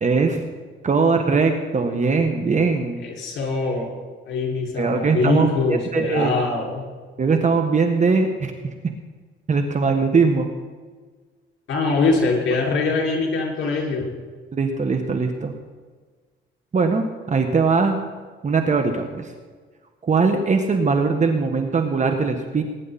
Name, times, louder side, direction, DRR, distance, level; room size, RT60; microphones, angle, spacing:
voice 1, 0.0-0.4 0.8-3.0 4.8-6.3 7.2-8.5 9.5-10.5 14.5-15.5 16.7-18.0 18.4-19.3 20.0-22.6, right 4 dB, 35° right, 5 dB, 1.6 m, -20 dB
voice 2, 3.0-3.9 4.3-6.9 11.7-14.1, left 3 dB, 70° left, -1 dB, 5.7 m, -23 dB
21.0 x 11.0 x 4.3 m, 1.4 s
cardioid pair, 90°, 20 cm